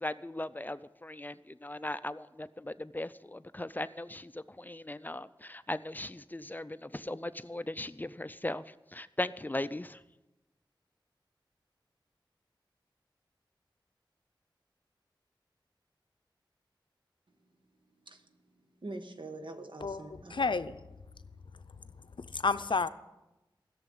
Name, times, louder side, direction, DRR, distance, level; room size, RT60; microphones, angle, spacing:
voice 1, 0.0-1.4 1.6-4.3 4.6-8.6 8.9-10.0, left 1 dB, 20° left, 0.5 m, -38 dB
voice 2, 18.8-20.6 21.3-21.4 22.2-22.4, right 2 dB, 70° right, 1.4 m, -45 dB
voice 3, 20.3-20.8 22.3-22.9, left 4 dB, 70° left, 0.6 m, -30 dB
15.5 x 7.1 x 9.3 m
wide cardioid pair, 55°, 9 cm